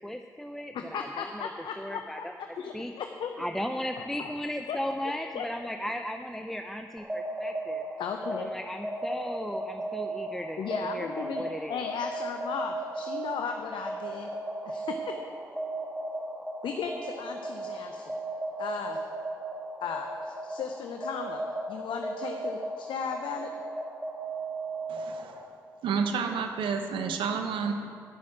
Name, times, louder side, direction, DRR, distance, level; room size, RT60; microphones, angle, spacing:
voice 1, 0.0-1.5 1.8-2.3 2.7-2.9 3.4-7.8 8.3-10.6 10.9-11.8, equal, 5° left, 6 dB, 0.6 m, -36 dB
voice 2, 0.7-2.3 2.6-3.5 4.7-4.8 5.3-5.5 8.0-8.5 10.6-11.4 11.7-14.3 14.6-15.2 16.6-18.1 18.6-19.0 19.8-21.4 21.7-23.5, left 6 dB, 70° left, 5 dB, 0.7 m, -35 dB
sound 1, 7.0-25.5, right 2 dB, 15° right, 1.8 m, -36 dB
voice 3, 24.9-25.4 25.8-27.7, right 6 dB, 75° right, 6 dB, 1.0 m, -30 dB
10.5 x 6.4 x 8.6 m, 2.3 s
hypercardioid pair, 45°, 9 cm